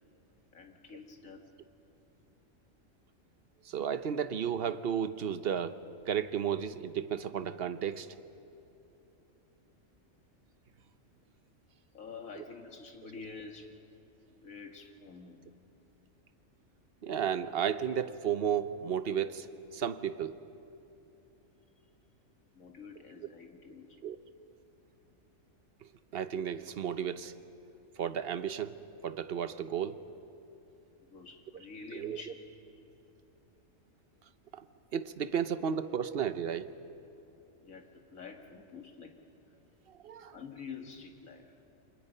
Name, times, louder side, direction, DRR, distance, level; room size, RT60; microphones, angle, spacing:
voice 1, 0.5-1.5 11.9-13.8 14.3-15.4 22.5-24.1 31.0-32.4 37.6-39.2 40.3-41.6, left 5 dB, 85° left, 3 dB, 2.4 m, -48 dB
voice 2, 3.7-5.8 6.1-8.1 17.0-19.5 19.7-20.4 24.0-24.2 26.1-27.3 28.0-30.0 32.0-32.2 34.5-34.6 34.9-36.8 40.0-40.3, right 8 dB, 55° right, 12 dB, 0.9 m, -33 dB
28.5 x 25.5 x 5.5 m, 2.9 s
omnidirectional pair, 1.4 m